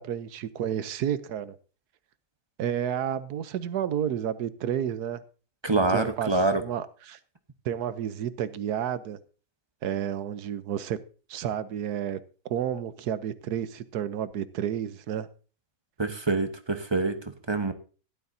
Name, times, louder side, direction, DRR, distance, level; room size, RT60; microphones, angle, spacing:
voice 1, 0.0-1.5 2.6-5.2 5.9-7.2 7.6-9.2 9.8-11.0 11.3-12.2 12.5-15.3, right 9 dB, 75° right, 14 dB, 1.3 m, -31 dB
voice 2, 5.6-6.6 16.0-17.7, right 2 dB, 20° right, 7 dB, 0.9 m, -26 dB
16.0 x 11.5 x 2.7 m, 0.36 s
omnidirectional pair, 1.7 m